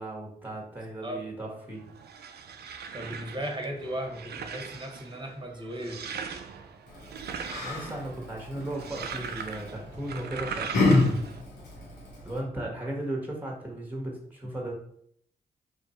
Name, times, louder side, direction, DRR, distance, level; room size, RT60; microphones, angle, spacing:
voice 1, 0.0-1.8 7.6-11.1 12.2-14.7, right 1 dB, 10° right, 0 dB, 1.3 m, -36 dB
voice 2, 1.0-1.6 2.9-6.0, right 1 dB, 25° right, 2 dB, 1.2 m, -36 dB
sound 1, 1.7-11.4, right 6 dB, 70° right, 0.5 m, -40 dB
Yell, 6.9-12.4, left 2 dB, 85° left, 1.2 m, -29 dB
3.4 x 2.5 x 4.3 m, 0.67 s
supercardioid pair, 40°, 17 cm